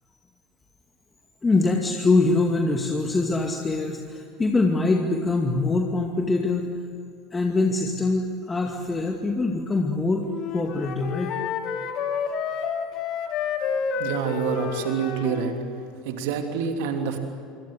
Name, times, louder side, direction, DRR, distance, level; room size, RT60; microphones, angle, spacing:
voice 1, 1.4-6.7 7.3-11.3, left 3 dB, 20° left, 2 dB, 2.4 m, -23 dB
Wind instrument woodwind instrument, 10.3-15.6, left 6 dB, 45° left, 3.0 m, -29 dB
voice 2, 14.0-15.6 16.0-17.2, right 7 dB, 60° right, 4 dB, 3.1 m, -27 dB
27.0 x 25.0 x 8.0 m, 2.5 s
figure-of-eight pair, 75°, 0 cm